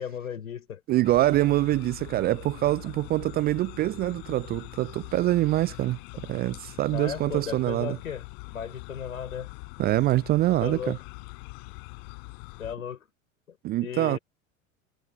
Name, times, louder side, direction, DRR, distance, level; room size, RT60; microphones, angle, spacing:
voice 1, 0.0-0.8 6.9-8.2 8.5-9.5 10.6-11.0 12.6-13.1 13.5-14.2, left 8 dB, 75° left, 4.5 m, -35 dB
voice 2, 0.9-8.0 9.8-11.0 13.6-14.2, right 16 dB, 25° right, 0.4 m, -25 dB
sound 1, 1.0-12.8, left 35 dB, 55° left, 7.2 m, -43 dB
figure-of-eight pair, 75°, 41 cm